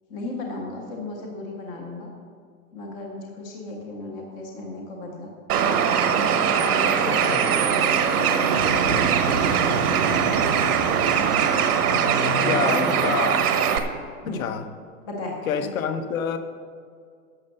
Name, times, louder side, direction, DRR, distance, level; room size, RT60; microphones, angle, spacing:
voice 1, 0.1-2.1 2.7-5.3 6.1-7.3 7.6-10.4 11.9-13.1 14.2-14.4 15.0-15.4 15.7-15.8, left 2 dB, 10° left, 0 dB, 0.5 m, -35 dB
Bird, 5.5-13.8, right 7 dB, 75° right, 1.2 m, -21 dB
sound 1, 7.8-13.2 13.8-14.0, right 6 dB, 35° right, 0.6 m, -30 dB
voice 2, 12.5-13.4 14.2-14.6 15.5-16.4, left 7 dB, 60° left, 8 dB, 1.1 m, -27 dB
11.5 x 6.8 x 6.5 m, 2.2 s
supercardioid pair, 160°, 46 cm